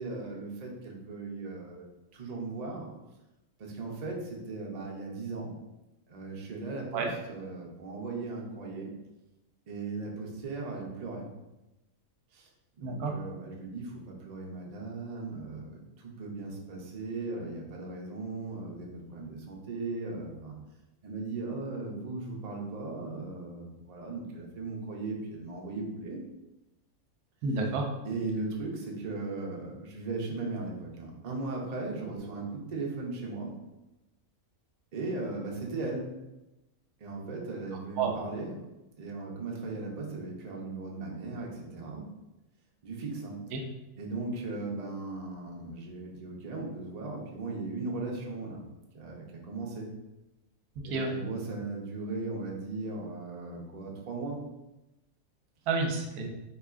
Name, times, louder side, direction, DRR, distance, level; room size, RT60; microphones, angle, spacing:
voice 1, 0.0-1.9 2.1-2.9 3.6-5.5 6.1-8.9 9.7-11.3 12.3-12.5 12.8-20.5 21.0-26.2 28.0-33.5 34.9-36.1 37.0-38.6 39.0-42.1 42.8-43.4 44.0-48.6 48.9-49.9 50.8-54.4, right 3 dB, 75° right, -1 dB, 0.3 m, -37 dB
voice 2, 12.8-13.1 27.4-27.9 38.0-38.1 43.5-43.6 50.9-51.1 55.7-56.3, right 4 dB, 90° right, 2 dB, 1.1 m, -29 dB
4.0 x 2.9 x 2.4 m, 0.98 s
omnidirectional pair, 1.6 m